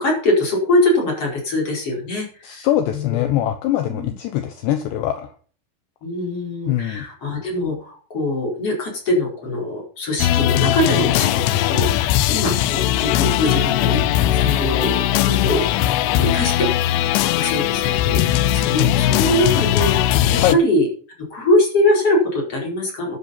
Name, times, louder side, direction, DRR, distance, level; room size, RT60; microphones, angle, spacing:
voice 1, 0.0-2.7 2.9-3.3 3.8-4.1 6.0-14.0 14.3-15.7 16.0-17.0 17.4-20.9 21.2-23.2, left 1 dB, 30° left, -1 dB, 5.3 m, -22 dB
voice 2, 2.4-5.3 6.7-7.0 20.4-20.6, left 12 dB, 75° left, 7 dB, 2.9 m, -22 dB
sound 1, 10.2-20.5, left 12 dB, 90° left, 3.4 m, -19 dB
12.0 x 10.5 x 5.6 m, 0.43 s
omnidirectional pair, 5.7 m